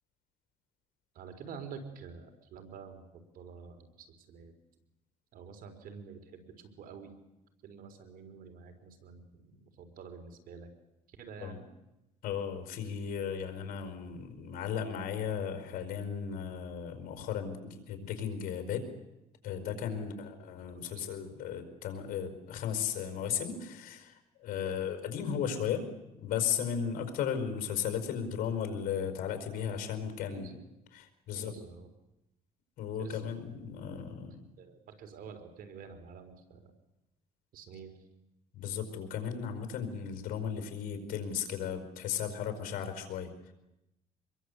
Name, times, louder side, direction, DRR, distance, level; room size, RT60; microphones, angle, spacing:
voice 1, 1.1-4.5 5.3-7.1 7.6-10.7 11.1-11.7 19.9-20.1 20.7-21.0 24.5-24.8 29.5-29.7 30.2-30.5 31.3-31.9 33.0-33.2 34.6-36.7 37.5-37.9, right 5 dB, 70° right, 7 dB, 4.3 m, -48 dB
voice 2, 12.2-18.8 19.4-25.9 26.2-30.6 30.9-31.6 32.8-34.4 38.5-43.5, left 8 dB, 75° left, 7 dB, 5.0 m, -35 dB
25.5 x 22.5 x 8.2 m, 0.91 s
cardioid pair, 90°, 15 cm